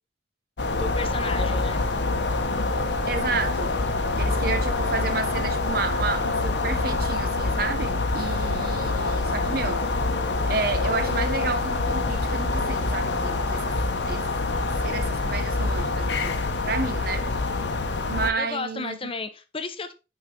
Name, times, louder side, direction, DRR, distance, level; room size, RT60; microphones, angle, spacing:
sound 1, 0.6-18.3, left 3 dB, 85° left, 1.0 m, -26 dB
voice 1, 0.7-1.8 18.3-19.9, left 3 dB, 30° left, 0.8 m, -33 dB
voice 2, 3.1-3.8 4.2-9.9 10.5-13.8 14.1-14.4 14.8-16.4 16.6-17.3 18.1-19.1, right 4 dB, 60° right, 0.8 m, -31 dB
8.0 x 4.8 x 3.7 m
head